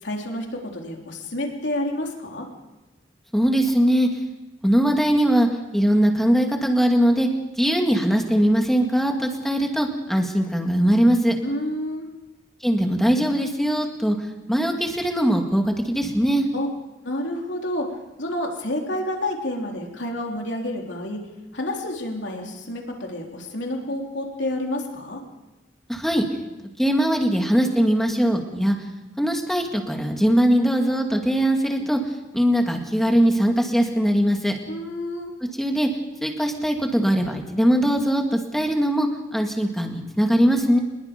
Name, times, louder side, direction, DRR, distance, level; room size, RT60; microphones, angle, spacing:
voice 1, 0.0-2.5 11.4-12.1 16.5-16.7 17.0-17.9 18.2-21.2 21.5-25.2 34.7-35.3, left 1 dB, 60° left, 1 dB, 3.6 m, -29 dB
voice 2, 3.3-4.1 4.6-7.3 7.6-11.4 12.6-14.2 14.5-16.5 25.9-26.3 26.8-28.8 29.2-32.0 32.3-34.5 35.4-35.9 36.2-40.8, equal, ahead, 2 dB, 2.2 m, -21 dB
25.0 x 21.5 x 5.3 m, 1.1 s
head